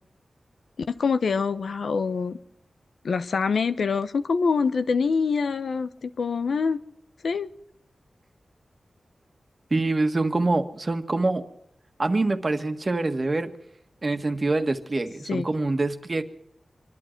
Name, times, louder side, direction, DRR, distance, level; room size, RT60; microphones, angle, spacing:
voice 1, 0.9-2.4 3.0-6.8 7.2-7.5 15.3-15.4, left 5 dB, 80° left, 11 dB, 0.9 m, -25 dB
voice 2, 9.7-11.4 12.0-13.5 14.0-16.2, right 2 dB, 35° right, 7 dB, 1.6 m, -25 dB
26.5 x 11.5 x 4.5 m, 0.77 s
wide cardioid pair, 95°, 0 cm